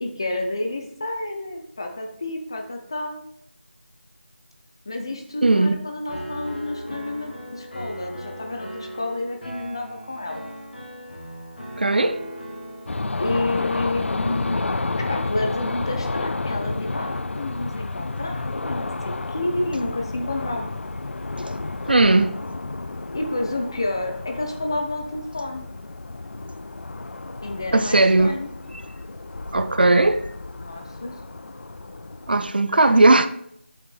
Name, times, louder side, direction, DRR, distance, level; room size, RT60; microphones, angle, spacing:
voice 1, 0.0-3.2 4.9-10.5 13.2-14.6 15.0-20.7 23.1-25.7 27.4-28.5 30.6-31.1, left 2 dB, 25° left, 0.5 m, -30 dB
voice 2, 5.4-5.8 11.8-12.2 21.9-22.3 27.7-28.3 29.5-30.2 32.3-33.3, right 2 dB, 55° right, 0.4 m, -17 dB
Piano, 6.1-12.9, equal, 50° left, 1.2 m, -37 dB
sound 1, 12.9-32.5, left 3 dB, 80° left, 0.3 m, -31 dB
7.3 x 5.0 x 3.3 m
figure-of-eight pair, 170°, 6 cm